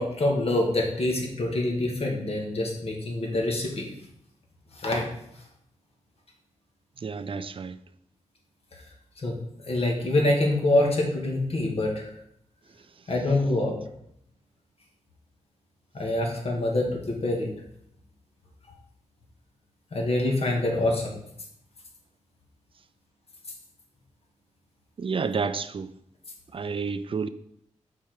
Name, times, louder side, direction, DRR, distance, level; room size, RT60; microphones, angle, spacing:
voice 1, 0.0-3.9 4.8-5.1 9.2-9.4 9.6-12.1 13.1-13.8 15.9-17.5 19.9-21.2, left 1 dB, 55° left, 1.8 m, -25 dB
voice 2, 7.0-7.7 25.0-25.9 26.5-27.3, right 5 dB, 45° right, 0.5 m, -30 dB
5.6 x 4.5 x 5.1 m
cardioid pair, 65°, 12 cm